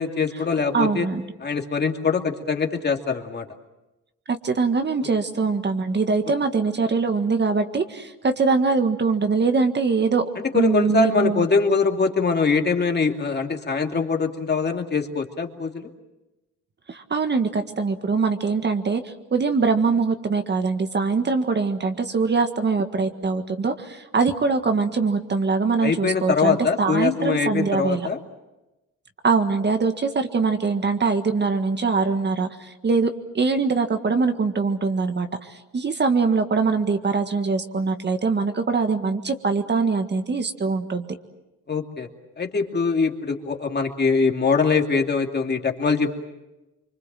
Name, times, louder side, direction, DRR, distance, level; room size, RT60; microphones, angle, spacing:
voice 1, 0.0-1.1 1.4-3.5 10.5-15.9 25.8-28.2 41.7-42.1 42.4-46.2, left 4 dB, 35° left, 3 dB, 2.6 m, -23 dB
voice 2, 0.7-1.2 4.3-11.5 16.9-28.1 29.2-41.1, right 4 dB, 35° right, 7 dB, 1.7 m, -23 dB
25.5 x 24.0 x 7.6 m, 1.0 s
cardioid pair, 90°, 30 cm